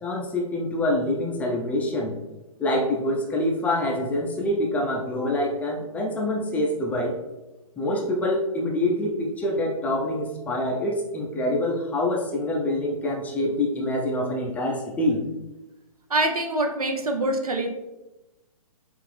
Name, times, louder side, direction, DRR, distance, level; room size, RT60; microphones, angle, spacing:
voice 1, 0.0-2.1 2.6-7.1 7.8-15.2, left 1 dB, 10° left, -1 dB, 0.4 m, -26 dB
voice 2, 16.1-17.7, right 1 dB, 80° right, 4 dB, 0.7 m, -24 dB
5.7 x 2.5 x 3.2 m, 1.0 s
figure-of-eight pair, 125°, 19 cm